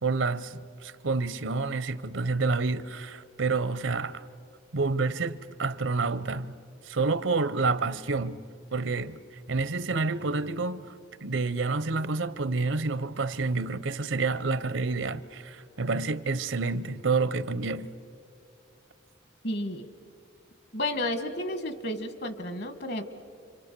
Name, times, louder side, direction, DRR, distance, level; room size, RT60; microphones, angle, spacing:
voice 1, 0.0-4.2 4.7-6.5 6.9-8.4 8.7-9.2 9.5-10.9 11.2-17.9, right 3 dB, 80° right, 0.8 m, -28 dB
voice 2, 19.4-19.9 20.7-23.0, left 1 dB, 55° left, 1.6 m, -32 dB
29.5 x 25.0 x 6.8 m
head